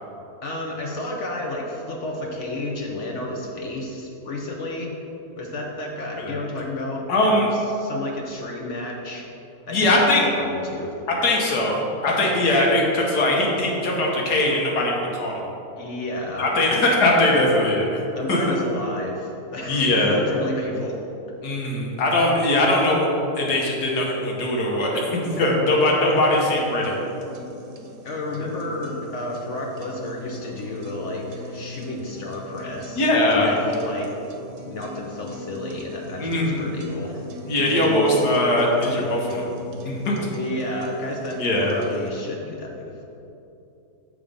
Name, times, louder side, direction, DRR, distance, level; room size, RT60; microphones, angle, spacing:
voice 1, 0.4-5.0 5.4-9.3 9.7-11.0 15.8-16.8 18.1-21.0 28.0-34.1 34.6-37.3 40.3-43.1, left 1 dB, 55° left, 0 dB, 0.9 m, -31 dB
voice 2, 7.1-7.5 9.7-10.3 11.2-15.4 16.4-18.0 18.3-18.4 19.7-20.2 21.4-23.1 23.4-26.9 32.9-33.5 36.2-36.6 37.4-39.4 39.8-40.3 41.4-41.7, left 1 dB, 85° left, -2 dB, 1.7 m, -21 dB
sound 1, 26.1-42.1, equal, 65° right, 1.2 m, -39 dB
7.2 x 4.9 x 5.2 m, 2.9 s
omnidirectional pair, 1.7 m